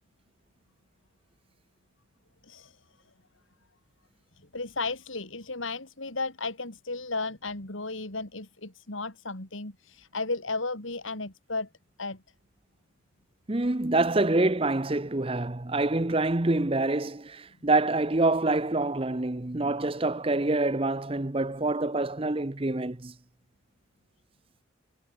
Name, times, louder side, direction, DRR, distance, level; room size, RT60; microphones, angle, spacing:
voice 1, 2.4-2.8 4.5-11.7 12.0-12.2, left 3 dB, 75° left, 4.1 m, -34 dB
voice 2, 13.5-23.1, right 2 dB, 25° right, 0.8 m, -26 dB
head